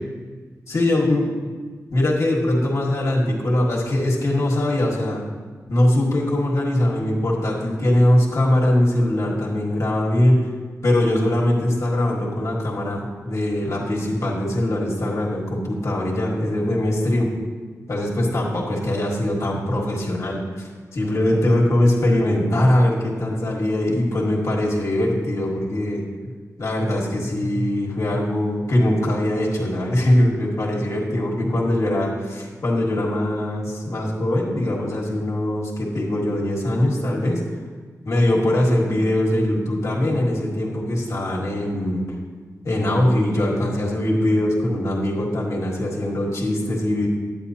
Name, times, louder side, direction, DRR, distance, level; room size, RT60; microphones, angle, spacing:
voice 1, 0.7-1.3 1.9-5.2 5.7-10.5 10.8-17.3 17.9-26.0 26.6-37.4 38.0-42.0 42.6-47.1, left 1 dB, 55° left, -3 dB, 1.5 m, -21 dB
10.0 x 9.0 x 2.8 m, 1.5 s
wide cardioid pair, 150°, 6 cm